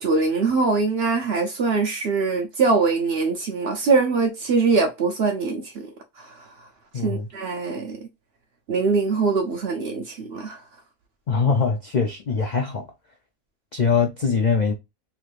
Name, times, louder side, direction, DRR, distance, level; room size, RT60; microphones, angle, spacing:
voice 1, 0.0-5.6 6.2-6.3 7.0-8.0 8.7-10.6, right 4 dB, 65° right, 0.7 m, -22 dB
voice 2, 6.9-7.3 11.3-12.8 13.7-14.7, left 5 dB, 70° left, 0.4 m, -22 dB
3.0 x 2.5 x 3.1 m
omnidirectional pair, 1.5 m